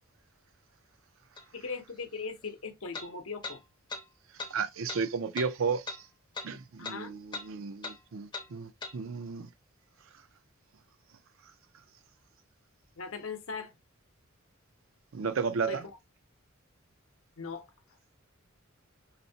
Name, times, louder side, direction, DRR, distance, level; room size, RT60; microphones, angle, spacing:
sound 1, 1.4-1.5 2.9-3.1 3.4-3.6 3.9-4.0 4.4-4.5 4.9-5.0 5.4-5.5 5.9-6.0 6.3-6.5 6.8-7.0 7.3-7.5 7.8-8.0 8.3-8.5 8.8-8.9, left 3 dB, 20° left, 0.6 m, -39 dB
voice 1, 1.5-3.6 6.8-7.1 13.0-13.8 15.7-15.8 17.4-17.7, left 4 dB, 70° left, 0.7 m, -39 dB
voice 2, 4.5-6.0 6.4-9.5 15.1-15.8, right 5 dB, 70° right, 0.5 m, -33 dB
4.0 x 2.1 x 2.6 m
head